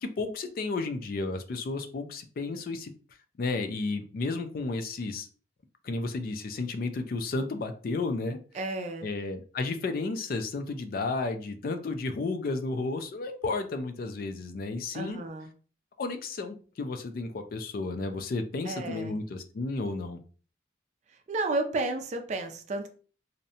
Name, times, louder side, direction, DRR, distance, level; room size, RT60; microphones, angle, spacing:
voice 1, 0.0-2.9 3.4-5.3 5.8-8.4 9.0-15.2 16.0-20.2, left 3 dB, 50° left, 7 dB, 0.3 m, -32 dB
voice 2, 8.5-9.1 14.9-15.5 18.6-19.2 21.1-22.9, right 2 dB, 40° right, 6 dB, 0.4 m, -32 dB
2.6 x 2.1 x 2.6 m, 0.40 s
head